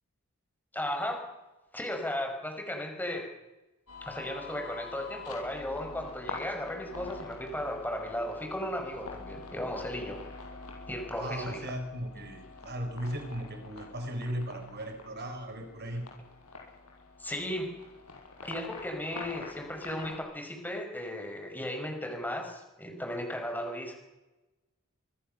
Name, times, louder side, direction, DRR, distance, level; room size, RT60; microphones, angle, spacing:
voice 1, 0.7-1.3 1.7-3.2 4.0-10.2 10.9-11.7 17.2-17.7 18.4-23.9, left 1 dB, 10° left, 4 dB, 5.6 m, -35 dB
sound 1, 3.9-20.2, left 3 dB, 85° left, 7.0 m, -46 dB
voice 2, 11.2-16.0, equal, 50° right, 6 dB, 5.1 m, -37 dB
24.5 x 23.0 x 6.8 m, 1.0 s
head